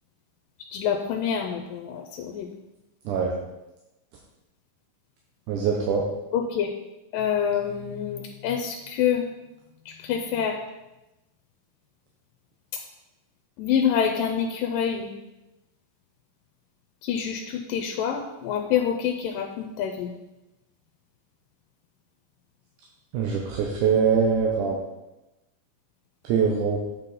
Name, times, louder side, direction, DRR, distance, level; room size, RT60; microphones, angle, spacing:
voice 1, 0.7-2.5 6.3-6.7 7.1-9.3 9.9-10.6 13.6-15.1 17.0-20.1, left 8 dB, 90° left, 2 dB, 2.3 m, -26 dB
voice 2, 5.5-6.0 23.1-24.8 26.2-26.8, right 6 dB, 75° right, 0 dB, 2.2 m, -23 dB
8.5 x 5.6 x 4.1 m, 0.99 s
omnidirectional pair, 3.9 m